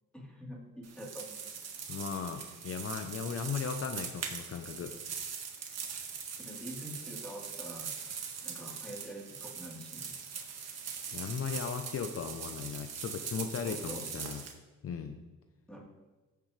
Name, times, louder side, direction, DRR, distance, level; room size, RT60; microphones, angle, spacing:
voice 1, 0.1-1.3 6.4-7.9 8.4-10.1 13.6-14.1 15.7-15.8, equal, 5° left, -4 dB, 3.5 m, -45 dB
sound 1, 0.8-14.5, right 6 dB, 55° right, 1.7 m, -41 dB
voice 2, 1.9-5.0 11.1-14.4 14.8-15.2, left 6 dB, 50° left, 7 dB, 0.8 m, -37 dB
15.0 x 6.8 x 3.3 m, 1.2 s
cardioid pair, 90°, 30 cm